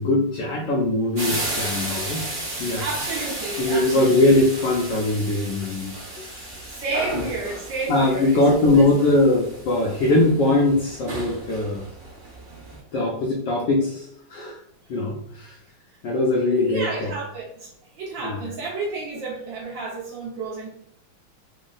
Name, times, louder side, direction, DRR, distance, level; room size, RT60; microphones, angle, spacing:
voice 1, 0.0-2.8 3.6-6.8 7.1-7.3 7.9-11.8 12.9-14.6 14.9-15.6 16.0-17.1 18.2-18.5, left 2 dB, 75° left, -1 dB, 1.0 m, -21 dB
sound 1, 1.2-12.8, right 2 dB, 45° right, 0.8 m, -34 dB
voice 2, 2.7-4.1 6.7-8.9 16.6-20.7, right 3 dB, 70° right, -4 dB, 1.3 m, -31 dB
3.6 x 2.0 x 3.7 m, 0.73 s
omnidirectional pair, 2.3 m